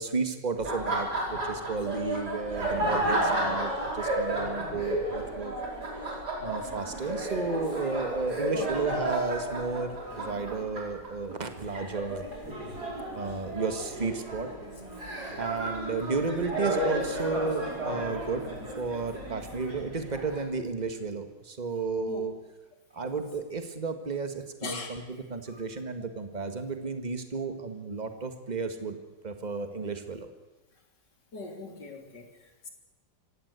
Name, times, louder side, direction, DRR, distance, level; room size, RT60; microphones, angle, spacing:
voice 1, 0.0-5.5 6.1-12.2 13.2-14.5 15.4-18.5 18.8-22.3 22.9-29.0 29.2-30.3, right 4 dB, 25° right, 7 dB, 1.8 m, -33 dB
Laughter, 0.6-20.4, right 1 dB, 60° right, 5.6 m, -33 dB
voice 2, 24.6-25.0 25.5-25.6 26.0-26.1 31.3-32.7, left 3 dB, 70° left, 3 dB, 4.0 m, -40 dB
25.0 x 17.0 x 8.2 m, 1.1 s
omnidirectional pair, 1.9 m